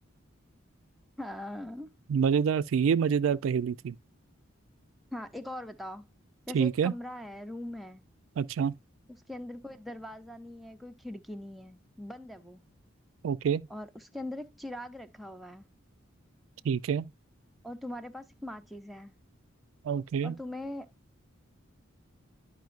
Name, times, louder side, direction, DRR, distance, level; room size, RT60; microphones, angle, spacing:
voice 1, 1.2-1.9 5.1-6.1 6.5-8.0 9.1-12.6 13.7-15.7 17.6-19.1 20.2-20.9, left 1 dB, ahead, 0.4 m, -41 dB
voice 2, 2.1-4.0 6.5-6.9 8.4-8.7 13.2-13.7 16.6-17.1 19.8-20.3, right 7 dB, 75° right, 0.3 m, -27 dB
10.5 x 5.1 x 2.4 m
head